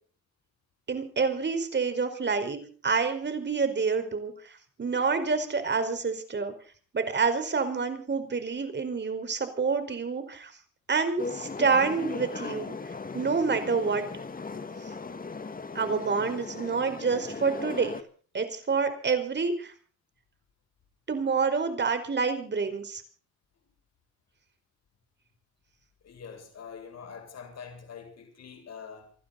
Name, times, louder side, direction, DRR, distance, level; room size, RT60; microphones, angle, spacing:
voice 1, 0.9-4.3 4.8-6.5 6.9-10.5 10.9-12.7 13.1-14.0 15.7-17.9 18.3-19.7 21.1-23.0, right 5 dB, 35° right, 5.0 m, -27 dB
sound 1, 11.2-18.0, left 4 dB, 30° left, 2.2 m, -38 dB
voice 2, 26.0-29.1, left 6 dB, 60° left, 7.5 m, -44 dB
28.5 x 12.5 x 4.2 m
cardioid pair, 90°, 30 cm